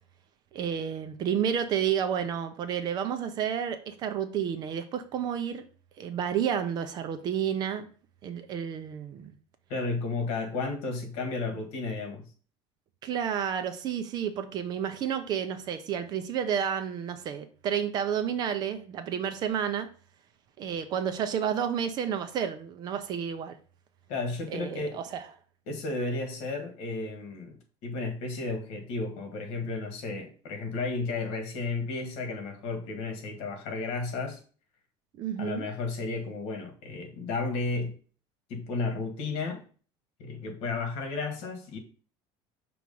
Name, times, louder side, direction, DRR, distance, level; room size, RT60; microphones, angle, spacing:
voice 1, 0.5-5.6 6.0-7.9 8.2-9.4 13.0-19.9 20.6-23.6 24.5-25.2 35.2-35.7, right 8 dB, 35° right, 0.6 m, -30 dB
voice 2, 9.7-12.2 24.1-25.0 25.7-27.6 27.8-34.4 35.4-37.9 38.5-39.6 40.2-41.8, left 3 dB, 55° left, 1.6 m, -33 dB
6.1 x 3.1 x 5.3 m
cardioid pair, 170°, 12 cm